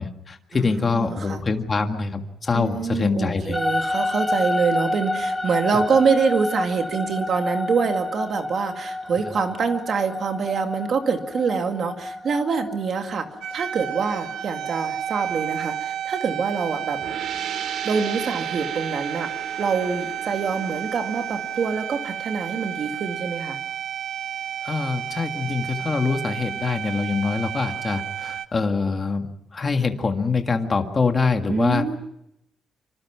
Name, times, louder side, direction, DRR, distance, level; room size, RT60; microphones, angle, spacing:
voice 1, 0.0-3.6 5.7-5.8 24.6-31.8, left 4 dB, 25° left, 5 dB, 1.8 m, -24 dB
voice 2, 0.5-1.4 2.5-17.0 17.8-19.3 19.6-23.6 31.5-32.0, right 5 dB, 40° right, 6 dB, 2.2 m, -25 dB
sound 1, 3.5-15.8, left 1 dB, 5° left, 1.8 m, -29 dB
sound 2, 13.4-28.5, right 10 dB, 90° right, 1.3 m, -31 dB
sound 3, 17.0-22.5, right 7 dB, 70° right, 2.9 m, -37 dB
26.0 x 25.5 x 6.0 m, 0.79 s
cardioid pair, 180°, 0 cm